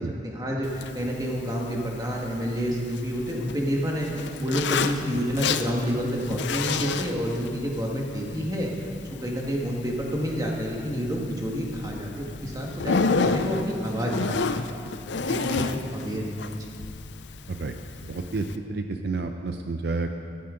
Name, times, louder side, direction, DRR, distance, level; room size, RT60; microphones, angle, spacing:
voice 1, 0.0-4.1 4.4-8.7 9.2-14.2 14.5-14.8 15.3-16.6, equal, 20° right, -2 dB, 1.7 m, -29 dB
Zipper (clothing), 0.6-18.6, left 4 dB, 70° left, 0.5 m, -32 dB
voice 2, 18.0-20.1, right 3 dB, 60° right, 6 dB, 0.5 m, -30 dB
14.5 x 12.5 x 3.8 m, 2.4 s
head